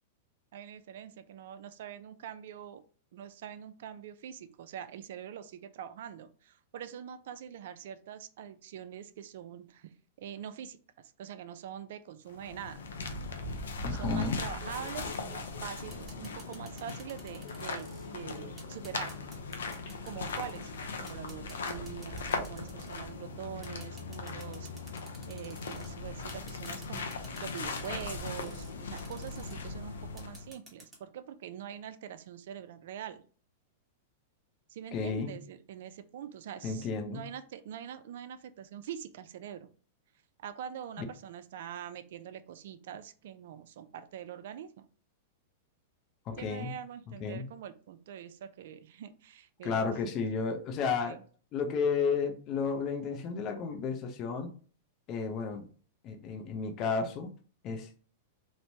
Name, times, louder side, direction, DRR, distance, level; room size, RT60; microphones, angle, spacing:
voice 1, 0.5-2.8 3.1-12.8 13.9-17.9 18.1-19.2 19.9-24.7 25.3-27.1 27.4-33.2 34.7-39.7 40.4-44.9 46.4-49.8 51.1-51.2, right 9 dB, 70° right, 12 dB, 0.3 m, -44 dB
sound 1, 12.3-30.5, left 3 dB, 85° left, 0.5 m, -39 dB
voice 2, 13.8-14.4 34.9-35.3 36.6-37.2 46.3-46.7 47.2-47.4 49.6-51.2 51.5-54.5 55.1-55.6 56.0-57.3 57.6-57.9, left 5 dB, 40° left, 5 dB, 0.5 m, -32 dB
Telephone, 14.6-15.7 16.2-16.3 16.8-16.9 17.3-18.4 19.6-20.3, left 3 dB, 65° left, 1.1 m, -51 dB
sound 2, 14.7-15.2 15.9-18.1 18.6-20.7 21.1-23.1 23.6-25.9 26.3-28.7 29.0-29.5 30.2-31.0, right 2 dB, 15° right, 1.0 m, -53 dB
3.0 x 2.1 x 2.7 m, 0.41 s
hypercardioid pair, 125°, 0 cm